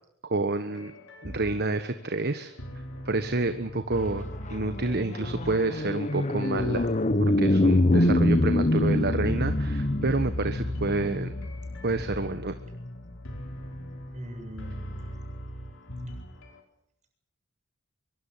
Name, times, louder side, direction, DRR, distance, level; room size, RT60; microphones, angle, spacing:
voice 1, 0.2-0.9 1.2-2.5 3.0-6.9 7.2-11.3 11.8-12.5, right 2 dB, 50° right, 9 dB, 1.4 m, -29 dB
sound 1, 0.7-16.6, equal, 60° left, 4.7 m, -41 dB
sound 2, 4.1-13.6, left 1 dB, 35° left, 1.0 m, -26 dB
voice 2, 14.1-15.3, equal, 35° right, 4 dB, 7.6 m, -42 dB
24.0 x 24.0 x 7.4 m, 0.71 s
head